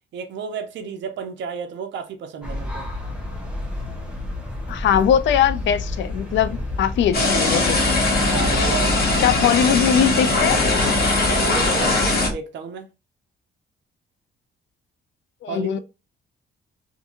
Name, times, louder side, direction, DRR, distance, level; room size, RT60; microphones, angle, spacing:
voice 1, 0.1-2.9 8.1-9.1 11.3-12.9 15.5-15.7, right 6 dB, 65° right, 0.6 m, -32 dB
sound 1, 2.4-12.3, left 2 dB, 5° right, 0.9 m, -29 dB
voice 2, 4.7-7.8 9.2-10.6 15.4-15.8, left 9 dB, 70° left, 0.4 m, -20 dB
sound 2, 7.1-12.3, left 2 dB, 50° left, 1.2 m, -20 dB
2.7 x 2.6 x 2.4 m
cardioid pair, 90°, 20 cm